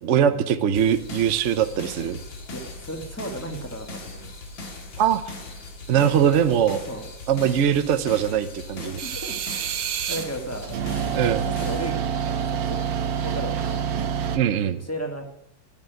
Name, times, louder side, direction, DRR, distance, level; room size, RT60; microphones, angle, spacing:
voice 1, 0.0-2.2 5.0-5.2 5.9-6.8 7.3-9.0 11.1-11.4 14.3-14.8, right 9 dB, 55° right, 10 dB, 0.8 m, -21 dB
sound 1, 0.7-11.9, left 2 dB, 85° left, 2.7 m, -39 dB
sound 2, 0.8-13.8, left 2 dB, 55° left, 4.4 m, -51 dB
voice 2, 2.5-4.3 6.9-7.1 8.8-12.8 13.2-14.0 14.7-15.2, right 1 dB, 10° left, 4 dB, 1.5 m, -36 dB
sound 3, 9.0-10.3 10.6-14.4, right 8 dB, 80° right, 1.7 m, -27 dB
11.0 x 9.3 x 9.1 m, 0.79 s
omnidirectional pair, 2.0 m